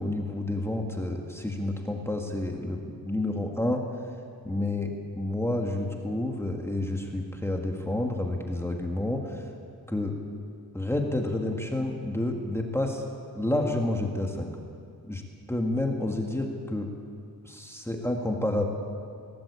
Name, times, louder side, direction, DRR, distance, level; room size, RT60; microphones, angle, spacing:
voice 1, 0.0-3.8 4.4-9.5 9.9-10.2 10.7-13.0 13.3-14.5 15.0-15.2 15.5-16.9 17.4-18.7, left 1 dB, 5° left, 2 dB, 1.9 m, -29 dB
21.0 x 19.0 x 8.3 m, 2.3 s
wide cardioid pair, 125°, 38 cm